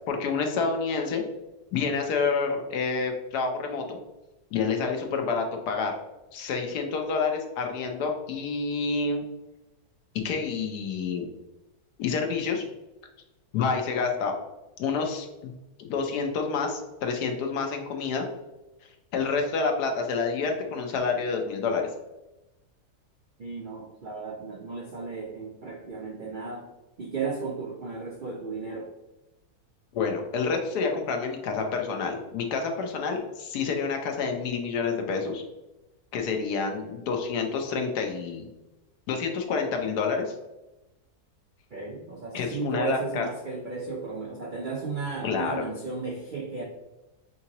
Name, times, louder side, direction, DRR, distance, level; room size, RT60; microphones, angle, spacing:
voice 1, 0.1-1.2 1.7-4.0 4.5-6.0 6.3-9.2 10.2-11.3 12.0-12.6 13.5-14.3 14.8-15.5 15.8-18.2 19.1-21.8 29.9-35.4 36.1-38.5 39.1-40.3 42.3-43.3 45.2-45.6, left 5 dB, 85° left, 3 dB, 1.3 m, -28 dB
voice 2, 23.4-26.7 27.0-28.9 41.7-46.6, right 4 dB, 80° right, -1 dB, 0.4 m, -34 dB
5.5 x 2.9 x 2.8 m, 0.99 s
omnidirectional pair, 1.7 m